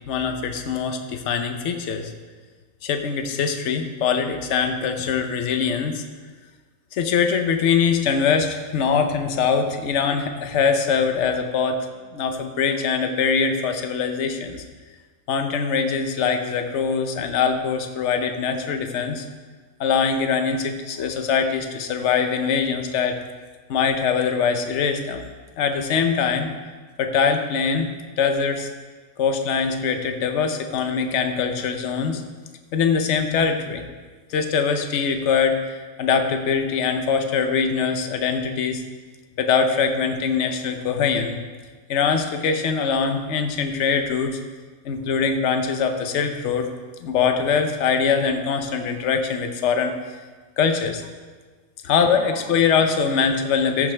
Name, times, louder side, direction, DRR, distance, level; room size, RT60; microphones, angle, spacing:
voice 1, 0.1-2.1 2.8-6.0 6.9-11.8 12.1-14.6 15.3-19.3 19.8-23.2 23.7-25.2 25.6-26.5 27.0-27.9 28.2-28.7 29.2-32.2 32.7-33.8 34.3-38.8 39.4-41.4 41.9-44.4 44.8-46.7 47.0-49.9 50.6-51.0 51.8-53.9, left 6 dB, 55° left, 6 dB, 1.0 m, -22 dB
14.5 x 7.2 x 3.4 m, 1.4 s
omnidirectional pair, 1.6 m